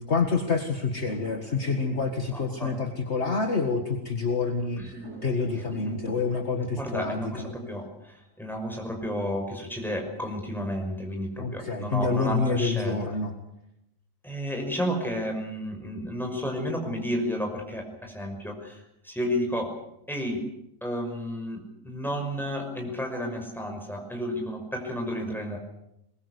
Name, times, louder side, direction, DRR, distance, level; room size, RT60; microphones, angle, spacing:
voice 1, 0.0-7.5 11.4-13.3, left 4 dB, 45° left, 3 dB, 2.1 m, -27 dB
sound 1, 1.1-4.1 4.4-4.5 5.0-8.0 8.4-9.0, right 2 dB, 75° right, 5.1 m, -51 dB
voice 2, 2.3-2.7 4.6-5.1 5.7-6.0 6.8-13.0 14.2-19.7 20.1-20.5 20.8-25.6, equal, ahead, 2 dB, 5.9 m, -32 dB
22.0 x 21.5 x 8.3 m, 0.83 s
omnidirectional pair, 1.6 m